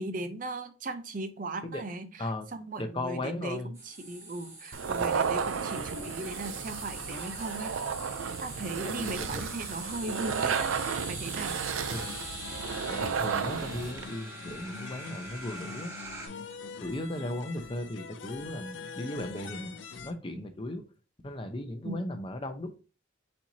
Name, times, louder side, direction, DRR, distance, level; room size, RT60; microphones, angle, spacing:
voice 1, 0.0-7.8 8.4-10.7 11.1-11.6 21.8-22.1, right 2 dB, 45° right, 9 dB, 0.6 m, -38 dB
voice 2, 2.2-2.5 2.8-3.7 8.8-9.4 11.9-12.1 12.9-15.9 16.8-19.7 20.0-20.9 21.2-22.8, left 1 dB, 25° left, 7 dB, 0.6 m, -36 dB
sound 1, 3.7-16.3, right 1 dB, 15° right, 1.1 m, -43 dB
sound 2, 4.7-14.0, right 6 dB, 85° right, 0.4 m, -33 dB
sound 3, 11.8-20.1, left 5 dB, 65° left, 0.5 m, -44 dB
4.3 x 4.3 x 2.7 m, 0.33 s
head